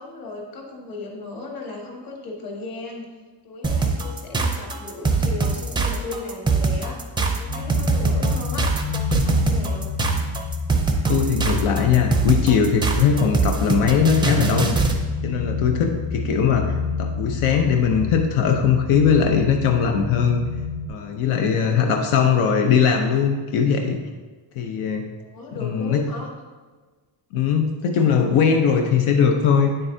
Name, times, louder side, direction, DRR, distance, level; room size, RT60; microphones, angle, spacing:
voice 1, 0.0-3.1 3.4-7.0 7.3-8.7 9.1-9.9 15.6-16.0 21.3-22.1 25.2-26.3, left 2 dB, 45° left, 0 dB, 1.5 m, -36 dB
sound 1, 3.6-15.0, right 4 dB, 10° right, 0.4 m, -22 dB
sound 2, 7.5-20.9, left 5 dB, 60° left, 1.5 m, -29 dB
voice 2, 11.1-14.8 15.2-20.4 20.9-24.0 24.6-25.1 25.6-26.1 27.3-29.7, left 6 dB, 90° left, 3 dB, 0.8 m, -20 dB
8.9 x 7.7 x 2.7 m, 1.4 s
cardioid pair, 180°, 48 cm